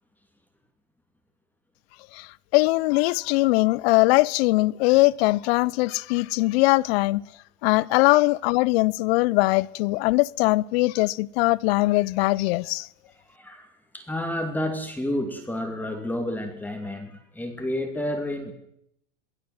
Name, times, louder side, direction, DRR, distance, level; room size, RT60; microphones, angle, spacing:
voice 1, 2.1-7.2 7.6-12.9, left 22 dB, 50° left, 0.8 m, -21 dB
voice 2, 7.7-8.2 13.3-13.7 13.9-18.5, left 1 dB, 5° left, 2.7 m, -30 dB
23.0 x 15.5 x 7.8 m
hypercardioid pair, 115°, 38 cm